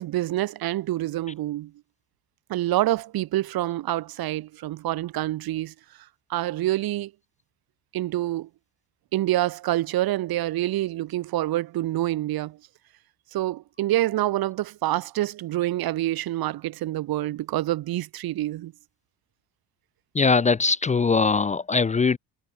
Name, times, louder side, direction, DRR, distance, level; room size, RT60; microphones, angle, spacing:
voice 1, 0.0-1.7 2.5-5.7 6.3-7.1 7.9-8.5 9.1-12.6 13.3-18.7, right 15 dB, 60° right, 3.2 m, -27 dB
voice 2, 20.1-22.2, left 4 dB, 15° left, 0.9 m, -21 dB
cardioid pair, 170°, 40 cm